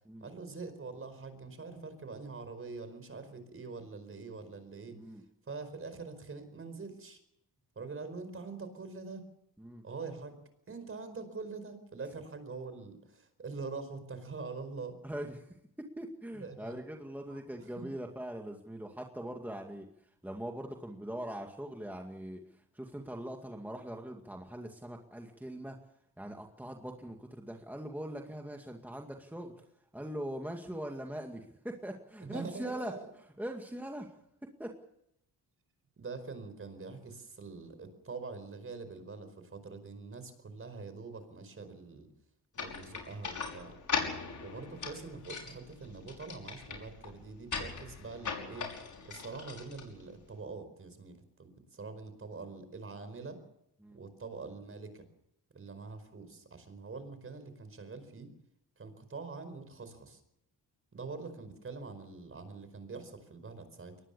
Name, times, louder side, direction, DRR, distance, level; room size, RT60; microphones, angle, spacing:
voice 1, 0.2-5.0 5.5-7.2 7.7-9.3 9.8-10.4 10.7-15.0 16.3-16.7 17.3-17.9 32.2-33.1 36.0-42.1 42.6-43.8 44.4-48.7 49.0-53.4 53.9-55.1 55.5-58.3 58.8-60.2 60.9-64.0, right 4 dB, 35° right, 10 dB, 4.9 m, -44 dB
voice 2, 15.0-15.5 15.8-19.9 20.2-22.4 22.7-25.8 26.2-29.5 29.9-32.9 33.4-34.1 34.6-34.7 53.8-54.0, right 1 dB, 5° right, 2 dB, 2.2 m, -41 dB
sound 1, 42.5-50.4, left 5 dB, 50° left, 6.0 m, -40 dB
23.0 x 19.5 x 6.9 m, 0.78 s
cardioid pair, 115°, 39 cm